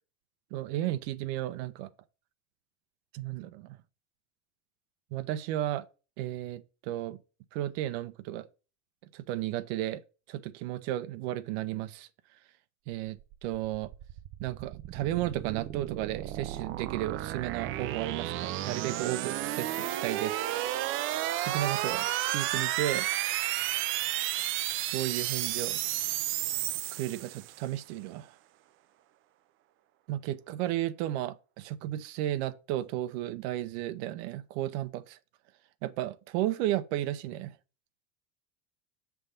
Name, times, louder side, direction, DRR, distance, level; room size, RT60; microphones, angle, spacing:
voice 1, 0.5-1.9 3.1-3.8 5.1-5.9 6.2-7.2 7.5-8.5 9.1-10.0 10.3-12.1 12.9-13.9 14.4-20.5 21.4-23.1 24.9-25.8 26.9-28.3 30.1-35.2 35.8-37.5, right 14 dB, 70° right, 0.7 m, -33 dB
sound 1, 13.2-27.6, right 14 dB, 40° right, 0.4 m, -32 dB
7.1 x 3.4 x 5.3 m
supercardioid pair, 140°, 33 cm